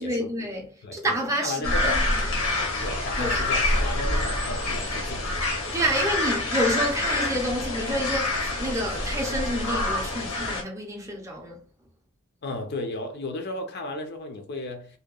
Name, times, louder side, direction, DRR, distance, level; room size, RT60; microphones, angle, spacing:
voice 1, 0.0-2.3 3.2-3.5 5.7-11.6, equal, 15° right, 0.5 m, -29 dB
voice 2, 0.8-1.2 1.4-2.0 2.8-5.3 12.4-15.0, left 2 dB, 55° left, 0.5 m, -34 dB
sound 1, 1.6-10.6, left 2 dB, 80° left, 0.9 m, -27 dB
2.7 x 2.2 x 2.3 m
head